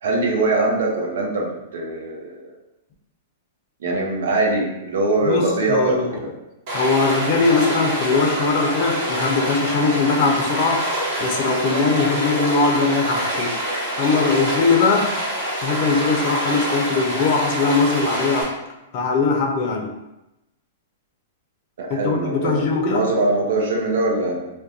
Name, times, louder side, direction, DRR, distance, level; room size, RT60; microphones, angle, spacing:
voice 1, 0.0-2.5 3.8-6.3 21.8-24.5, right 2 dB, 75° right, -1 dB, 0.6 m, -22 dB
voice 2, 5.3-6.2 6.7-10.9 11.2-13.6 14.0-15.1 15.6-18.5 18.9-19.9 21.9-23.0, left 4 dB, 50° left, 0 dB, 0.5 m, -20 dB
Stream, 6.7-18.4, right 1 dB, 55° right, 1.1 m, -26 dB
2.3 x 2.1 x 2.7 m, 0.94 s
hypercardioid pair, 120°, 0 cm